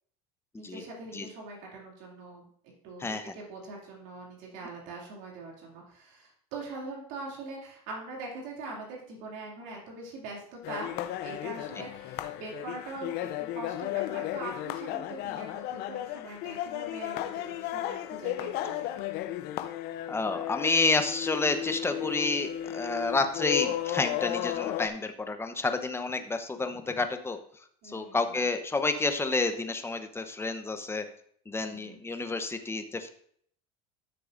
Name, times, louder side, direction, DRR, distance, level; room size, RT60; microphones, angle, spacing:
voice 1, 0.6-2.5 2.8-10.9 11.2-19.0 27.8-28.3 31.6-32.0, right 3 dB, 65° right, -2 dB, 2.7 m, -42 dB
voice 2, 3.0-3.3 20.1-27.4 27.8-31.0 31.5-33.1, left 3 dB, 10° left, 7 dB, 0.9 m, -29 dB
sound 1, 10.6-24.9, left 13 dB, 60° left, 0.7 m, -34 dB
13.0 x 6.7 x 2.6 m, 0.63 s
supercardioid pair, 110°, 19 cm